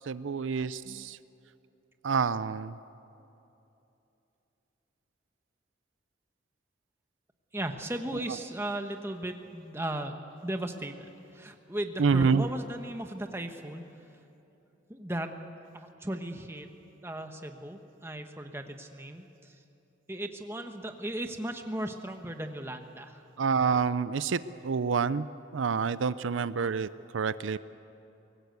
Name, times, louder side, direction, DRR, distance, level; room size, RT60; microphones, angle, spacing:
voice 1, 0.1-1.2 2.0-2.8 12.0-12.5 23.4-25.3 25.5-26.9 27.1-27.6, right 5 dB, 85° right, 16 dB, 0.5 m, -27 dB
voice 2, 7.5-13.8 14.9-15.3 15.7-16.7 17.0-19.6 20.1-23.2, right 1 dB, 15° right, 5 dB, 1.1 m, -36 dB
23.0 x 18.5 x 8.1 m, 2.9 s
head